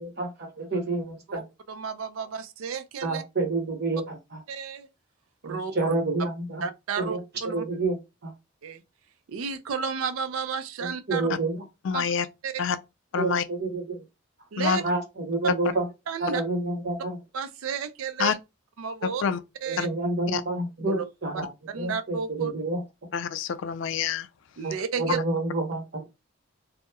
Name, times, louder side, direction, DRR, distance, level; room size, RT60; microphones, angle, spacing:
voice 1, 0.0-1.4 2.2-2.3 3.0-4.4 5.4-6.7 7.0-8.3 10.8-12.0 13.2-14.0 14.8-15.9 16.2-17.2 19.7-23.1 24.6-26.1, right 2 dB, 50° right, 0.9 m, -29 dB
voice 2, 1.7-3.2 4.5-4.9 5.4-5.9 6.6-7.6 8.6-8.8 9.3-11.2 11.9-12.0 12.4-12.6 14.5-14.8 16.1-16.4 17.3-18.4 18.8-19.2 19.6-19.9 20.9-21.0 21.7-22.5 24.6-25.2, right 6 dB, 80° right, 0.4 m, -32 dB
voice 3, 11.9-12.3 12.6-12.8 13.1-13.4 14.6-14.8 18.2-18.3 19.2-19.4 19.8-19.9 20.3-20.4 23.1-24.3, left 6 dB, 60° left, 0.3 m, -26 dB
2.8 x 2.0 x 2.2 m
head